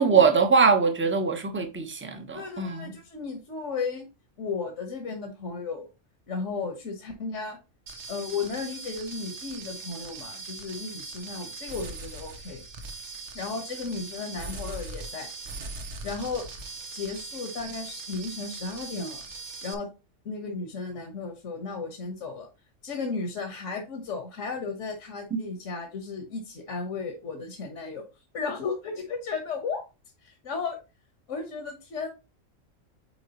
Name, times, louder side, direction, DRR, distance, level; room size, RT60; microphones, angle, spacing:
voice 1, 0.0-2.9 25.3-25.4, right 5 dB, 10° right, 0.8 m, -22 dB
voice 2, 2.3-4.0 4.4-5.9 6.3-7.6 8.1-12.6 13.3-15.3 16.0-16.5 16.9-19.2 19.6-19.9 20.2-22.5 22.8-28.0 28.3-29.8 30.2-30.8 31.3-32.1, left 4 dB, 70° left, 1.5 m, -34 dB
sound 1, 7.9-19.7, right 3 dB, 65° right, 1.3 m, -40 dB
8.7 x 4.7 x 2.9 m
omnidirectional pair, 1.3 m